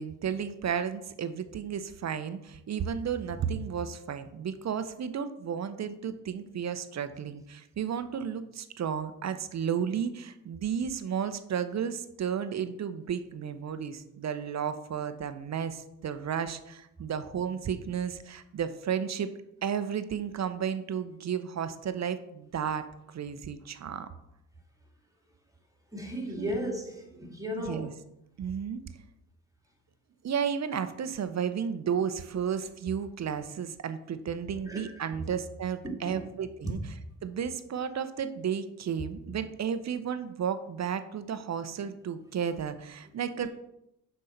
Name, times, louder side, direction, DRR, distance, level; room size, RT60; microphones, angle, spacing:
voice 1, 0.0-19.3 19.6-24.1 26.4-26.5 27.7-27.9 28.4-28.8 30.2-36.8 37.2-43.6, right 7 dB, 40° right, 11 dB, 0.7 m, -33 dB
voice 2, 25.9-27.9 34.7-34.9 35.8-36.3 36.6-36.7, equal, 10° right, 0 dB, 2.0 m, -35 dB
6.3 x 5.6 x 4.3 m, 0.84 s
hypercardioid pair, 55°, 44 cm